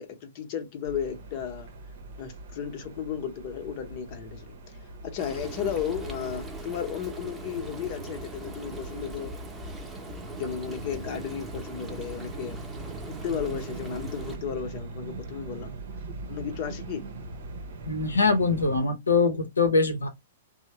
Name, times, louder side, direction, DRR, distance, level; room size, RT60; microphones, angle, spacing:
voice 1, 0.0-1.7 2.2-9.3 9.9-12.6 13.0-15.7 16.3-17.1, left 8 dB, 45° left, 0.8 m, -34 dB
sound 1, 0.8-18.8, right 3 dB, 65° right, 0.7 m, -42 dB
Frying (food), 5.2-14.4, right 2 dB, 10° right, 0.8 m, -40 dB
voice 2, 17.9-20.1, left 3 dB, 90° left, 0.7 m, -23 dB
3.1 x 2.0 x 2.9 m
hypercardioid pair, 115°, 0 cm